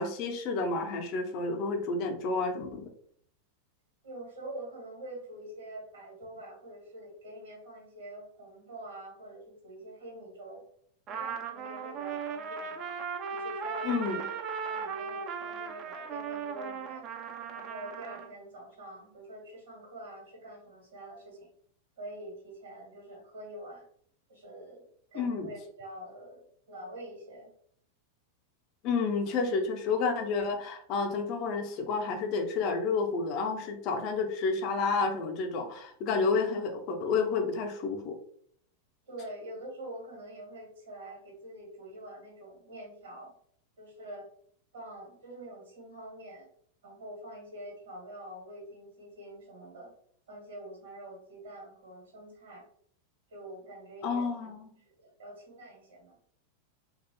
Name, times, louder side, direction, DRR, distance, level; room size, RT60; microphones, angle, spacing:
voice 1, 0.0-2.9 13.8-14.2 25.1-25.5 28.8-38.2 54.0-54.7, left 4 dB, 40° left, 4 dB, 0.5 m, -30 dB
voice 2, 4.0-10.6 11.1-12.9 13.3-17.0 17.5-21.5 22.0-23.8 24.3-27.5 39.1-43.3 43.8-44.3 44.7-46.5 46.8-49.9 50.3-52.6 53.3-54.5 54.8-56.2, right 1 dB, 70° right, -1 dB, 1.2 m, -46 dB
Trumpet, 11.1-18.3, right 6 dB, 35° right, 0.3 m, -37 dB
3.1 x 2.3 x 2.7 m, 0.63 s
figure-of-eight pair, 90°, 0 cm